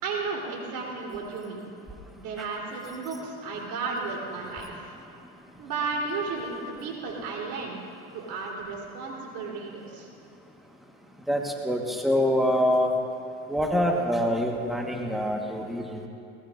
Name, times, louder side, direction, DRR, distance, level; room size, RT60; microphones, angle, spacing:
voice 1, 0.0-1.6 2.2-4.9 5.6-7.8 8.1-10.1, right 4 dB, 70° right, -2 dB, 3.7 m, -33 dB
voice 2, 11.3-12.9 13.5-16.1, equal, ahead, 0 dB, 1.4 m, -25 dB
21.0 x 19.0 x 2.6 m, 2.6 s
supercardioid pair, 105°, 31 cm